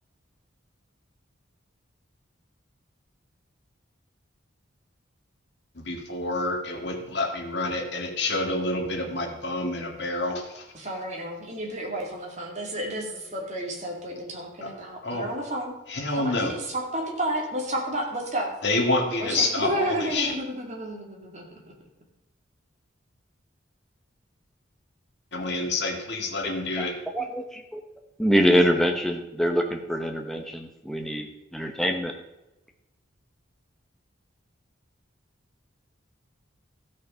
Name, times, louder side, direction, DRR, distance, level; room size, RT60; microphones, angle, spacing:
voice 1, 5.8-10.7 14.6-14.7 15.0-15.3 15.9-16.5 18.6-20.3 25.3-26.9, left 2 dB, 55° left, 1 dB, 2.0 m, -28 dB
voice 2, 10.7-15.7 16.1-18.5 19.2-21.7, right 1 dB, 35° right, 0 dB, 2.4 m, -31 dB
voice 3, 26.8-27.8 28.2-32.1, equal, ahead, 3 dB, 1.0 m, -25 dB
14.0 x 6.5 x 5.6 m, 0.98 s
head